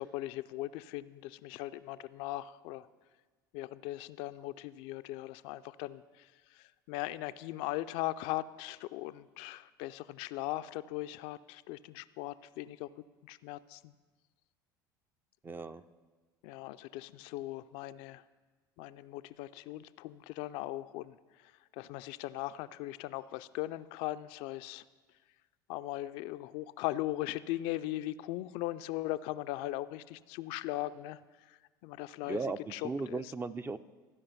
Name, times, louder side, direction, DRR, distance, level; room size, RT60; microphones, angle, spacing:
voice 1, 0.0-2.9 3.5-12.9 13.2-13.9 16.4-18.2 18.8-24.8 25.7-32.4 32.7-33.3, left 16 dB, 65° left, 12 dB, 0.4 m, -39 dB
voice 2, 15.4-15.8 32.3-33.8, right 4 dB, 20° right, 13 dB, 0.4 m, -37 dB
14.5 x 5.0 x 5.6 m, 1.3 s
hypercardioid pair, 75°, 11 cm